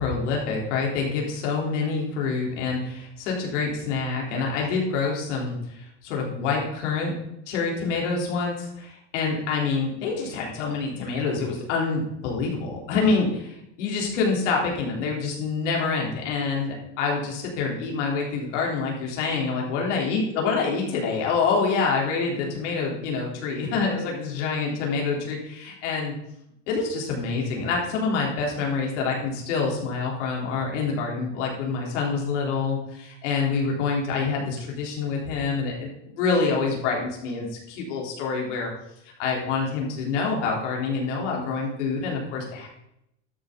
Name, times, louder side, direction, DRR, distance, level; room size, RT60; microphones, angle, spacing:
voice 1, 0.0-7.1 7.5-26.1 26.7-38.7 39.2-42.7, left 4 dB, 75° left, -1 dB, 3.7 m, -26 dB
12.5 x 6.0 x 5.2 m, 0.81 s
supercardioid pair, 170°, 36 cm